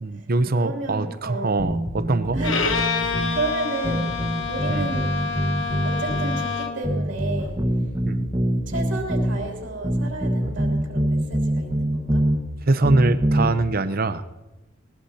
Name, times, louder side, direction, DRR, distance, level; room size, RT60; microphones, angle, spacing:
voice 1, 0.0-2.4 4.7-4.9 8.0-8.3 12.7-14.2, right 2 dB, 50° right, 11 dB, 0.8 m, -23 dB
voice 2, 0.5-1.5 2.3-2.6 2.9-4.1 4.5-5.0 5.8-7.5 8.7-12.2, right 2 dB, 70° right, 0 dB, 3.1 m, -32 dB
sound 1, 1.6-3.4 3.8-6.4 6.8-9.4 9.8-12.4 12.8-13.5, right 1 dB, 25° right, 1.5 m, -24 dB
Bowed string instrument, 2.4-6.9, left 5 dB, 75° left, 1.2 m, -27 dB
21.0 x 19.0 x 2.8 m, 1.0 s
head